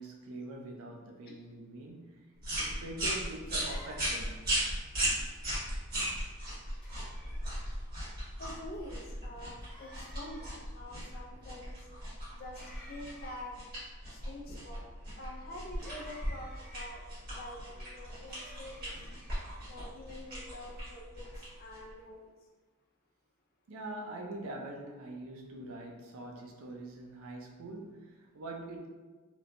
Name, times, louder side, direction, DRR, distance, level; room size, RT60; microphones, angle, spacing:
voice 1, 0.0-2.3 2.6-4.4 23.7-28.9, right 2 dB, 75° right, 2 dB, 0.4 m, -44 dB
sound 1, 2.4-22.0, right 1 dB, 45° right, 1.3 m, -38 dB
sound 2, 3.5-4.4 6.8-7.7 9.6-10.6 12.5-13.6 15.8-17.0 18.3-19.7, left 1 dB, ahead, 0.7 m, -54 dB
voice 2, 8.4-11.8 12.4-12.6 12.9-13.5 14.1-14.8 15.2-17.0 17.3-18.9 19.7-22.3, left 1 dB, 40° left, 0 dB, 0.3 m, -46 dB
3.1 x 2.1 x 2.4 m, 1.3 s
head